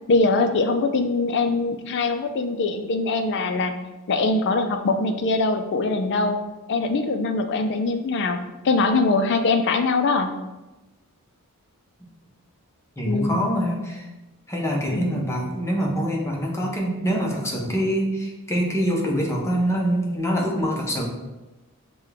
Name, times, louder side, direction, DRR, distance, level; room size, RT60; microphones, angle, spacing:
voice 1, 0.1-3.7 4.1-6.4 6.7-8.4 8.6-10.3 13.0-13.5 14.9-15.2, left 3 dB, 50° left, 7 dB, 0.4 m, -22 dB
voice 2, 13.0-14.1 14.5-21.1, equal, 10° left, -1 dB, 0.7 m, -24 dB
6.5 x 2.2 x 3.4 m, 1.1 s
head